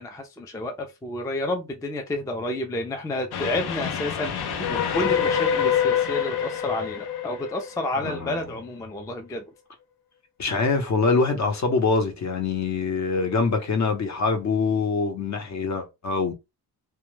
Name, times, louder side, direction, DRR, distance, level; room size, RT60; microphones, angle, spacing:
voice 1, 0.0-9.5, left 1 dB, 10° left, 0.3 m, -30 dB
Train, 3.3-8.6, left 8 dB, 75° left, 0.6 m, -26 dB
voice 2, 8.0-8.4 10.4-16.3, left 4 dB, 45° left, 0.7 m, -24 dB
2.2 x 2.1 x 3.1 m
wide cardioid pair, 135°, 38 cm